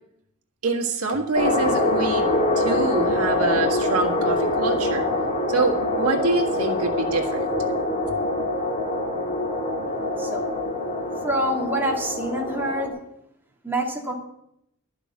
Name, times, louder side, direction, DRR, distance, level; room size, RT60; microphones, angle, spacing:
voice 1, 0.6-2.3 2.5-5.1 5.5-7.5, right 3 dB, 90° right, 3 dB, 1.6 m, -25 dB
sound 1, 1.3-12.9, left 1 dB, 35° left, 2.5 m, -24 dB
voice 2, 11.2-12.9 13.6-14.1, right 1 dB, 10° right, -1 dB, 1.9 m, -26 dB
12.0 x 6.7 x 8.5 m, 0.80 s
head